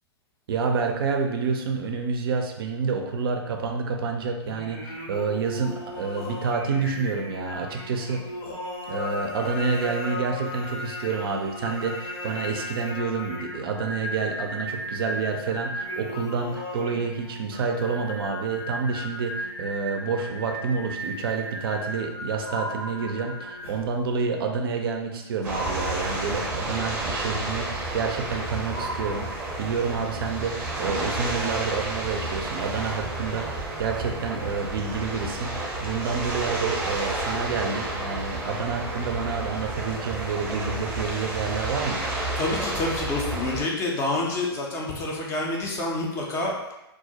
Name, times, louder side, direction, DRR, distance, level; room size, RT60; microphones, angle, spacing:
voice 1, 0.5-8.2 8.9-42.0, right 5 dB, 60° right, 3 dB, 0.4 m, -28 dB
Singing, 4.4-24.0, left 1 dB, 70° left, 1.0 m, -36 dB
sound 1, 22.5-23.7 25.5-26.7 28.7-29.9, right 1 dB, 50° left, 0.7 m, -37 dB
sound 2, 25.4-43.6, right 2 dB, 15° right, 0.7 m, -31 dB
voice 2, 42.4-46.7, left 2 dB, 20° left, -2 dB, 0.4 m, -28 dB
2.3 x 2.0 x 2.7 m, 0.93 s
hypercardioid pair, 120°, 14 cm